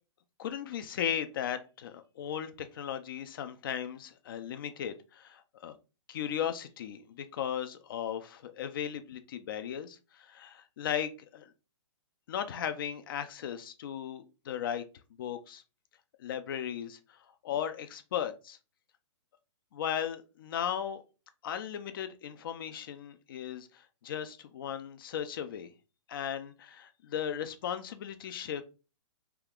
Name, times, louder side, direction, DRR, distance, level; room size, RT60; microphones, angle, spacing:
voice 1, 0.4-5.8 6.1-11.5 12.3-14.8 15.2-15.6 16.2-18.6 19.7-21.0 21.4-25.7 26.1-28.6, left 9 dB, 45° left, 10 dB, 0.4 m, -36 dB
2.8 x 2.3 x 3.5 m, 0.32 s
hypercardioid pair, 160°, 16 cm